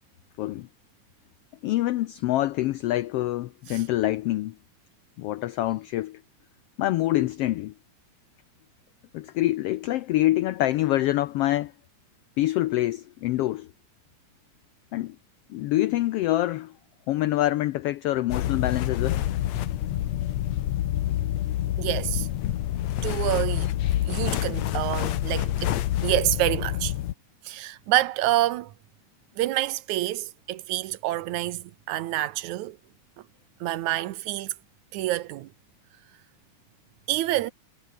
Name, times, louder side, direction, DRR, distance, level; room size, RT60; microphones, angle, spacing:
voice 1, 1.6-4.5 5.2-6.2 6.8-7.7 9.1-11.7 12.4-13.7 14.9-15.2 15.5-16.7 17.1-19.2 22.7-22.8, left 15 dB, 90° left, 1.3 m, -25 dB
sound 1, 18.3-27.1, left 13 dB, 70° left, 2.2 m, -27 dB
voice 2, 21.8-22.3 23.0-23.7 24.1-26.9 27.4-28.7 29.4-32.8 33.6-34.5 34.9-35.5 37.1-37.5, right 15 dB, 80° right, 2.2 m, -27 dB
omnidirectional pair, 3.4 m